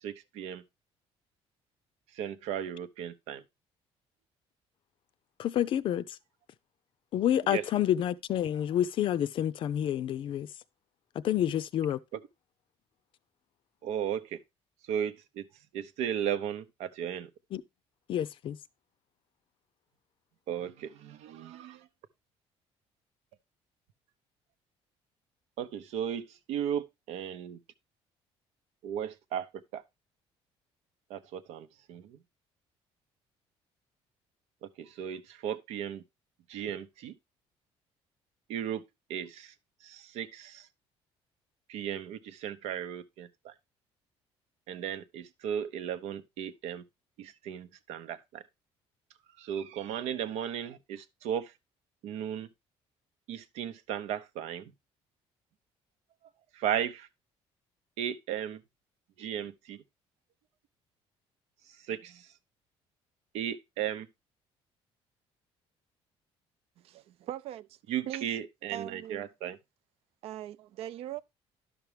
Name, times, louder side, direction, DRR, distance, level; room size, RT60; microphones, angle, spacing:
voice 1, 0.0-0.6 2.1-3.4 7.5-7.6 13.8-14.4 14.9-15.4 15.7-17.3 20.5-21.9 25.6-27.6 28.8-29.8 31.1-32.2 34.8-36.0 36.5-37.1 38.5-38.8 39.1-39.5 39.8-40.7 41.7-43.5 44.7-46.8 47.2-48.4 49.4-51.5 52.0-52.5 53.3-54.6 56.5-57.1 58.0-58.6 59.2-59.8 61.9-62.3 63.3-64.1 67.9-69.6, right 9 dB, 85° right, 0.8 m, -35 dB
voice 2, 5.4-6.2 7.1-10.5 11.2-12.0 17.5-17.6 18.1-18.6, left 11 dB, 50° left, 0.5 m, -28 dB
voice 3, 66.8-67.8 68.1-68.3 68.7-69.3 70.2-71.2, right 12 dB, 65° right, 0.5 m, -41 dB
11.0 x 6.0 x 3.3 m
cardioid pair, 145°, 11 cm